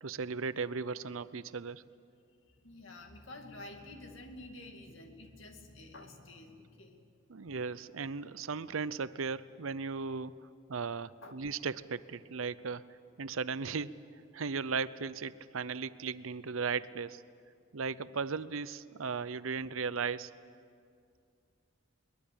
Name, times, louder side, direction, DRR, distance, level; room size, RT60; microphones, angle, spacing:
voice 1, 0.0-1.8 7.3-10.4 10.7-13.9 14.3-17.2 17.7-20.3, right 5 dB, 90° right, 16 dB, 0.7 m, -36 dB
voice 2, 2.5-7.1 11.2-11.4, left 2 dB, 70° left, 4 dB, 2.6 m, -50 dB
22.5 x 21.0 x 8.7 m, 2.3 s
head